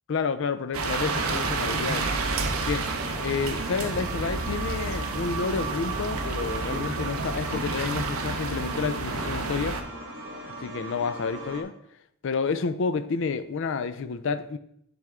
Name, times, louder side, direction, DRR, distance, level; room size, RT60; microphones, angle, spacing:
voice 1, 0.1-2.1 2.7-2.9 3.2-9.8 10.6-11.7 12.2-14.6, left 5 dB, 55° left, 12 dB, 0.4 m, -29 dB
sound 1, 0.7-9.8, right 3 dB, 70° right, 0.7 m, -30 dB
sound 2, 1.0-11.6, right 2 dB, 55° right, 1.6 m, -38 dB
10.5 x 3.5 x 3.5 m, 0.75 s
head